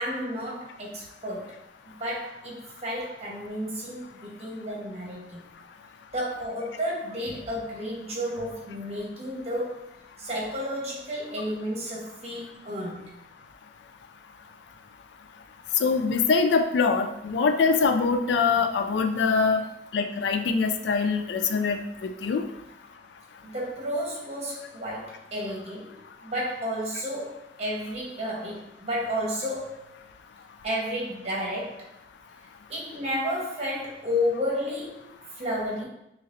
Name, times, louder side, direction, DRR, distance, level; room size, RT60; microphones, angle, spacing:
voice 1, 0.0-1.6 1.8-5.5 6.1-9.9 10.2-13.1 23.4-29.9 30.6-31.9 32.7-35.9, equal, 40° right, -3 dB, 1.0 m, -32 dB
voice 2, 15.8-19.6 19.9-22.4, left 5 dB, 85° left, 7 dB, 0.3 m, -23 dB
4.0 x 3.1 x 2.5 m, 0.85 s
head